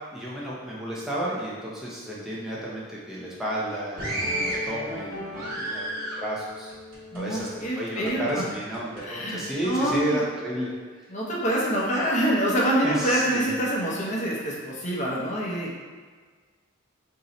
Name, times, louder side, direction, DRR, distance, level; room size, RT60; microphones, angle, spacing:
voice 1, 0.1-6.7 7.1-10.7 12.8-13.4, right 1 dB, ahead, -7 dB, 0.6 m, -32 dB
sound 1, 4.0-7.7 8.0-9.0 9.6-9.9, equal, 40° right, 1.0 m, -33 dB
voice 2, 7.1-8.4 9.0-10.2 11.1-15.8, right 1 dB, 35° left, -4 dB, 0.7 m, -26 dB
3.0 x 2.7 x 3.9 m, 1.5 s
head